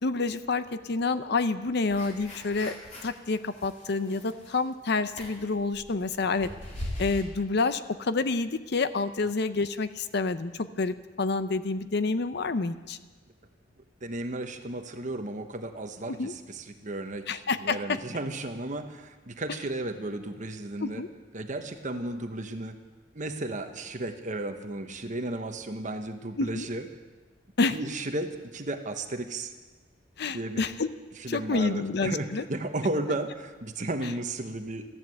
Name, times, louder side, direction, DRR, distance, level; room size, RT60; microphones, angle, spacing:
voice 1, 0.0-2.7 3.0-6.5 7.0-13.0 16.1-16.3 17.3-18.0 20.8-21.1 26.4-26.7 27.6-27.8 30.2-30.9 31.3-32.4 34.0-34.1, left 3 dB, 60° left, 12 dB, 0.7 m, -28 dB
sound 1, 1.9-3.2 3.5-4.7 5.1-7.2, left 1 dB, 40° left, 3.7 m, -40 dB
voice 2, 14.0-21.0 21.3-22.8 23.1-26.9 27.7-29.5 30.3-30.6 31.2-34.9, right 2 dB, 40° right, 7 dB, 1.1 m, -34 dB
14.0 x 11.5 x 7.8 m, 1.3 s
head